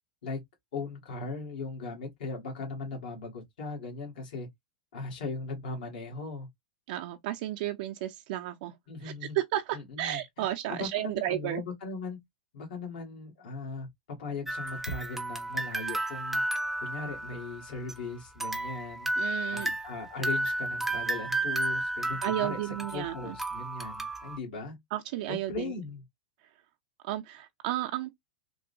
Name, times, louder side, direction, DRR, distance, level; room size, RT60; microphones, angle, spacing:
voice 1, 0.7-4.5 4.9-6.5 8.9-9.4 9.7-10.2 10.7-12.2 12.5-13.9 14.2-16.4 16.8-19.1 19.5-22.6 22.9-24.8 25.3-26.0, left 3 dB, 75° left, 1.8 m, -38 dB
voice 2, 6.9-8.8 9.0-11.6 19.2-19.7 22.2-23.4 24.9-25.7 27.0-28.1, right 14 dB, 60° right, 0.5 m, -33 dB
sound 1, 14.5-18.0 18.4-24.4, right 2 dB, 5° right, 0.5 m, -33 dB
3.6 x 2.2 x 2.5 m
hypercardioid pair, 120°, 5 cm